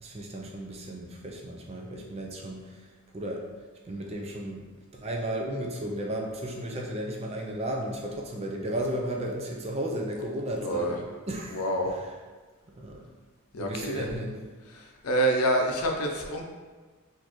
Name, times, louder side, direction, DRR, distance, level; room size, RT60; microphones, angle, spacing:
voice 1, 0.0-2.6 3.1-3.4 3.9-4.6 4.9-11.0 11.3-12.2 12.8-13.0 13.6-14.4, right 1 dB, 30° right, 0 dB, 0.4 m, -34 dB
voice 2, 10.6-11.0 11.5-11.9 13.5-14.0 15.0-16.4, right 1 dB, 85° left, 1 dB, 0.6 m, -26 dB
4.0 x 2.6 x 3.0 m, 1.4 s
head